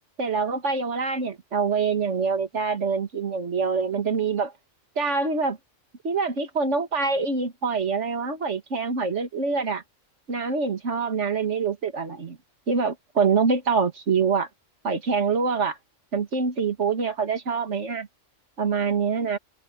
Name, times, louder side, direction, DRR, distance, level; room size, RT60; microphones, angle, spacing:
voice 1, 0.2-4.5 5.0-5.6 6.0-9.8 10.3-12.4 12.7-14.5 14.8-15.8 16.1-18.1 18.6-19.4, right 5 dB, 65° right, 2.3 m, -25 dB
omnidirectional pair, 1.3 m